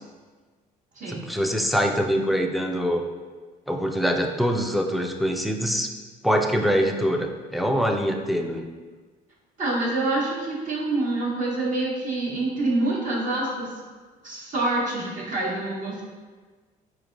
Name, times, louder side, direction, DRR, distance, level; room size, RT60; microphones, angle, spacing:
voice 1, 1.1-3.0 3.7-5.9 6.2-8.6, equal, ahead, 3 dB, 0.3 m, -24 dB
voice 2, 9.6-13.7 14.2-16.0, right 2 dB, 50° right, -4 dB, 0.9 m, -26 dB
4.4 x 3.2 x 2.5 m, 1.4 s
cardioid pair, 110°, 17 cm